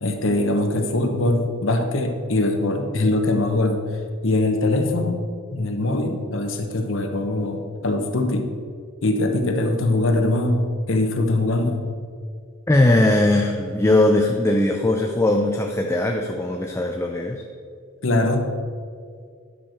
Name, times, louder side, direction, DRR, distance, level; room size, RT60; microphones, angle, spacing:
voice 1, 0.0-3.8 4.2-5.2 5.5-8.5 9.0-11.9 18.0-18.5, left 2 dB, 70° left, 4 dB, 1.0 m, -22 dB
voice 2, 12.7-17.4, left 1 dB, 15° left, 2 dB, 0.5 m, -19 dB
10.0 x 6.6 x 4.5 m, 2.2 s
head